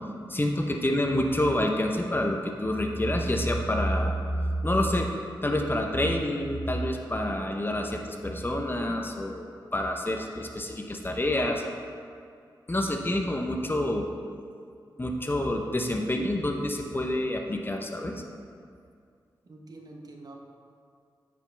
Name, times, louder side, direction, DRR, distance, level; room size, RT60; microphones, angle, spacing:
voice 1, 0.3-5.1 5.4-11.6 12.7-14.1 15.0-18.1, left 1 dB, 25° left, 2 dB, 0.9 m, -28 dB
voice 2, 19.4-20.4, right 2 dB, 50° right, 1 dB, 1.1 m, -46 dB
9.1 x 5.2 x 3.4 m, 2.3 s
supercardioid pair, 40°, 8 cm